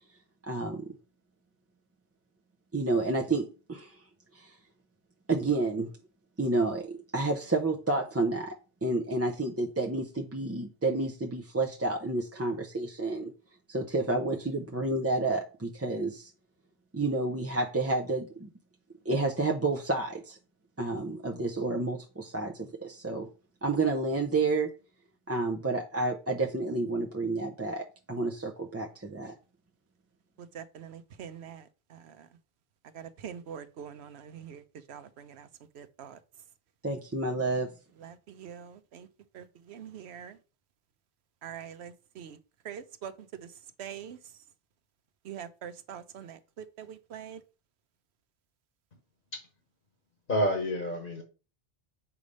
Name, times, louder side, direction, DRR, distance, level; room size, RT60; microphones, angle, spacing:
voice 1, 0.5-0.9 2.7-4.0 4.3-4.5 5.3-5.9 6.4-8.5 8.8-13.3 13.7-16.3 16.9-18.5 19.1-20.4 20.8-23.3 23.6-24.7 25.3-29.4 36.8-37.7, right 2 dB, 20° right, 0.5 m, -30 dB
voice 2, 30.5-32.3 32.9-34.6 34.9-35.5 35.7-36.2 38.0-39.1 39.3-40.4 41.4-42.4 42.6-43.1 43.4-43.5 43.8-44.2 45.2-47.4, right 8 dB, 85° right, 1.0 m, -44 dB
voice 3, 50.3-51.2, equal, 55° left, 1.6 m, -28 dB
7.0 x 3.3 x 5.3 m
omnidirectional pair, 1.1 m